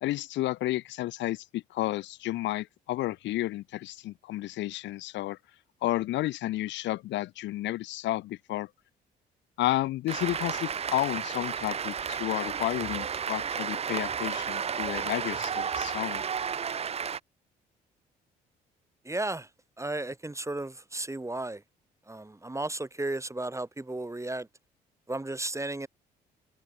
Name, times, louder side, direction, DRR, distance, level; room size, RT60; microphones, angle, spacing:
voice 1, 0.0-5.4 5.8-8.7 9.6-16.2, left 16 dB, 65° left, 0.8 m, -31 dB
Cheering / Applause, 10.1-17.2, right 7 dB, 30° right, 0.5 m, -32 dB
voice 2, 19.0-19.5 19.8-21.6 22.1-24.5 25.1-25.9, right 2 dB, 15° right, 2.7 m, -34 dB
hypercardioid pair, 55°, 20 cm